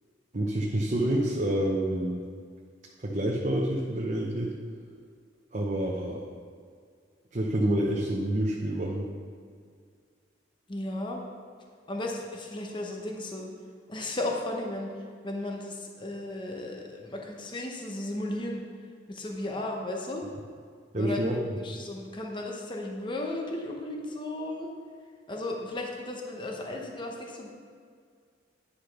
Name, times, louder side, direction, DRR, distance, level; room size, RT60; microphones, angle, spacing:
voice 1, 0.3-2.2 3.0-4.5 5.5-6.2 7.3-9.1 20.9-21.4, right 1 dB, 40° right, -2 dB, 0.8 m, -28 dB
voice 2, 10.7-11.2 11.9-13.5 13.9-14.9 15.2-18.6 19.1-20.3 21.0-24.7 25.3-27.5, left 1 dB, 25° left, 0 dB, 0.9 m, -35 dB
10.0 x 5.1 x 5.9 m, 2.1 s
head